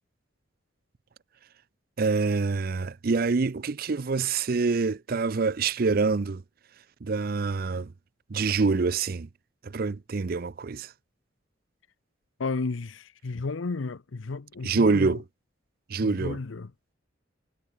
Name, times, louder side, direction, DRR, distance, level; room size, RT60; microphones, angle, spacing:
voice 1, 2.0-6.4 7.0-7.9 8.3-9.3 9.6-10.9 14.6-15.2 15.9-16.4, right 4 dB, 50° right, 0.5 m, -26 dB
voice 2, 12.4-15.2 16.0-16.7, left 3 dB, 85° left, 0.7 m, -33 dB
head